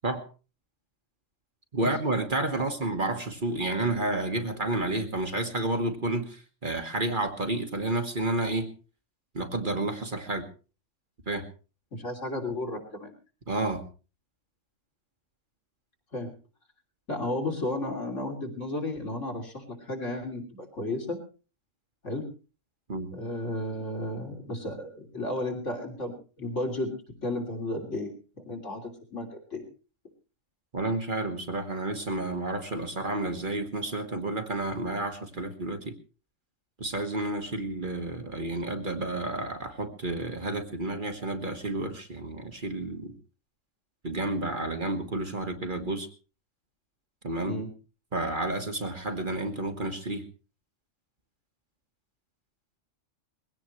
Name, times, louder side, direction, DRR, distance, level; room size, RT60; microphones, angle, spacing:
voice 1, 1.7-8.7 9.3-10.5 11.3-11.5 13.5-13.9 22.9-23.1 30.7-35.9 36.8-43.1 44.0-46.1 47.2-47.6 48.1-50.2, right 2 dB, 40° right, 5 dB, 1.6 m, -30 dB
voice 2, 11.9-13.1 16.1-16.3 17.1-21.2 22.0-22.3 23.1-26.1 26.4-26.9 27.2-28.1 28.4-29.6 47.5-47.7, left 1 dB, 75° left, 2 dB, 3.4 m, -33 dB
22.0 x 16.5 x 3.2 m, 0.36 s
omnidirectional pair, 1.3 m